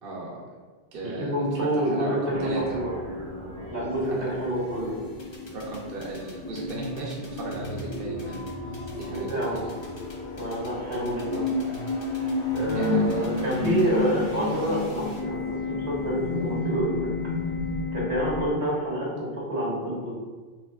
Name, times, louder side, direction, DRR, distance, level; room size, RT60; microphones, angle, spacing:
voice 1, 0.0-0.4 0.9-2.8 4.1-4.3 5.5-8.4 8.9-9.7 12.7-13.4, right 2 dB, 55° right, -4 dB, 0.9 m, -36 dB
voice 2, 1.0-3.0 3.7-5.0 9.1-9.6 10.4-11.7 12.5-17.1 17.9-20.1, right 1 dB, 75° right, -6 dB, 1.6 m, -28 dB
sound 1, 2.3-18.5, left 3 dB, 85° left, 1.5 m, -32 dB
sound 2, 2.3-7.6, right 1 dB, 35° right, 0.5 m, -47 dB
sound 3, 5.2-13.8, left 2 dB, 30° left, 0.7 m, -50 dB
5.9 x 2.8 x 2.3 m, 1.4 s
omnidirectional pair, 1.2 m